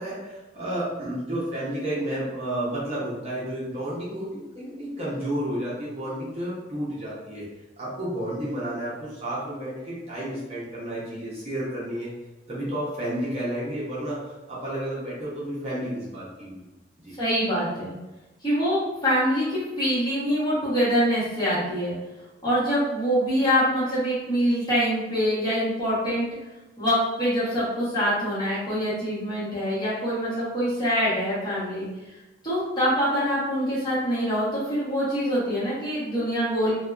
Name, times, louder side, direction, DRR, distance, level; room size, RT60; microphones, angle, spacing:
voice 1, 0.0-7.5 7.8-12.1 12.5-16.6 17.0-17.1, right 1 dB, 35° right, -8 dB, 0.7 m, -31 dB
voice 2, 17.2-17.9 18.4-21.9 22.4-26.2 26.8-31.8 32.4-36.7, equal, 20° left, -11 dB, 1.1 m, -24 dB
2.6 x 2.2 x 2.3 m, 1.1 s
head